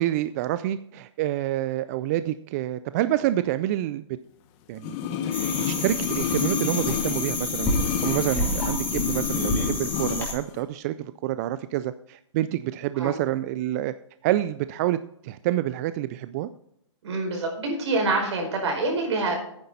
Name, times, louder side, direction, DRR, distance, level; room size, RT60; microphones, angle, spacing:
voice 1, 0.0-4.0 4.7-5.0 5.3-7.7 8.0-13.9 14.2-15.0 15.2-16.5, right 14 dB, 35° right, 13 dB, 0.3 m, -27 dB
sound 1, 4.8-10.3 10.5-10.6, left 8 dB, 30° left, 1.0 m, -29 dB
sound 2, 5.3-10.3, left 1 dB, 10° left, 2.7 m, -29 dB
voice 2, 17.0-19.4, right 2 dB, 65° right, 2 dB, 4.9 m, -26 dB
10.0 x 9.7 x 4.1 m, 0.75 s
hypercardioid pair, 135°, 16 cm